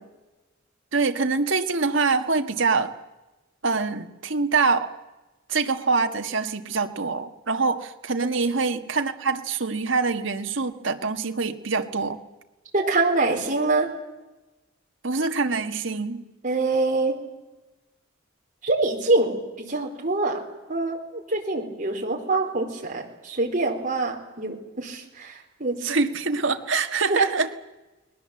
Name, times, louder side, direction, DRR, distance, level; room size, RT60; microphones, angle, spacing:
voice 1, 0.9-2.9 3.6-4.9 5.5-12.2 15.0-16.3 25.8-27.5, right 4 dB, 65° right, 7 dB, 1.7 m, -24 dB
voice 2, 12.7-13.9 16.4-17.1 18.6-20.4 20.7-25.3 25.6-25.8 27.1-27.2, right 2 dB, 40° right, 1 dB, 4.4 m, -25 dB
30.0 x 21.0 x 7.8 m, 1.1 s
head